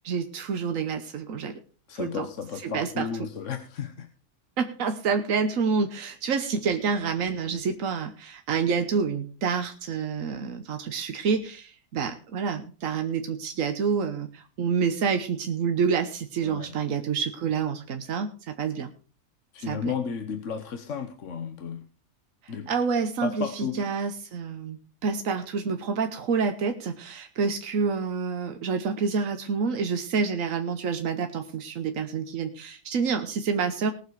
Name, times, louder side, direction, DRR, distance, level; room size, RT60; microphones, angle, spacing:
voice 1, 0.0-1.6 2.0-2.3 2.6-3.1 4.6-18.9 19.7-19.9 22.4-33.9, right 5 dB, 85° right, 6 dB, 1.4 m, -28 dB
voice 2, 1.9-4.1 16.4-16.8 19.5-21.8 22.5-22.7 23.2-23.8, left 6 dB, 70° left, 7 dB, 1.4 m, -33 dB
19.5 x 7.1 x 4.7 m, 0.39 s
omnidirectional pair, 1.4 m